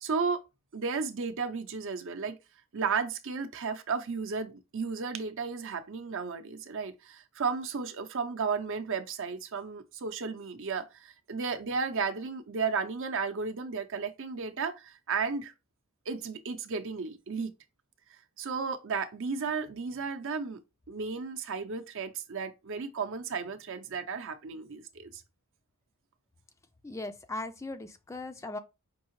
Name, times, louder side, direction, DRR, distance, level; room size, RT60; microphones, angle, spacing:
voice 1, 0.0-0.4 0.7-2.4 2.7-15.5 16.1-17.5 18.4-20.6 20.9-25.2, right 5 dB, 60° right, 0.6 m, -34 dB
voice 2, 26.8-28.6, left 2 dB, 15° left, 0.3 m, -38 dB
5.3 x 2.7 x 3.0 m
head